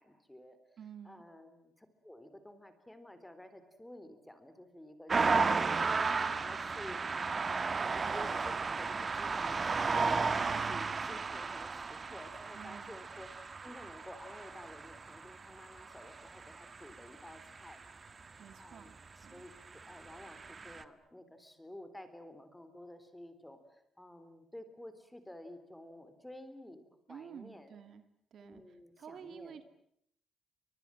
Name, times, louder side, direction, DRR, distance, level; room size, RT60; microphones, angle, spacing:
voice 1, 0.0-0.6 1.0-5.9 6.3-7.0 7.4-13.4 13.6-17.8 18.6-27.7 28.4-29.6, left 1 dB, 5° left, 10 dB, 3.6 m, -52 dB
voice 2, 0.8-1.2 10.4-10.7 12.5-12.9 18.4-18.9 19.2-19.4 27.1-28.0 28.3-28.6 29.0-29.6, right 8 dB, 55° right, 10 dB, 2.2 m, -50 dB
sound 1, 5.1-18.3 19.2-20.8, right 4 dB, 30° right, 1.5 m, -34 dB
30.0 x 25.5 x 7.7 m, 0.72 s
cardioid pair, 150°, 0 cm